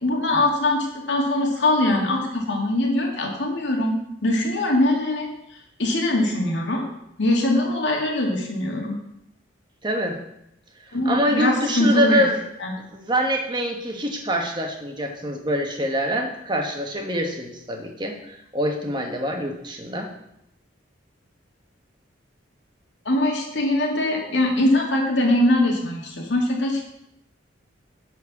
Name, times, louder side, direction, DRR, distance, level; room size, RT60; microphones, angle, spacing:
voice 1, 0.0-2.2 2.5-5.3 5.8-6.8 7.2-9.0 10.9-12.2 12.6-12.7 23.1-26.8, left 1 dB, 65° left, 0 dB, 2.2 m, -22 dB
voice 2, 9.8-10.2 10.8-12.4 12.9-20.1, equal, 25° right, 2 dB, 1.4 m, -25 dB
11.5 x 4.5 x 7.2 m, 0.81 s
head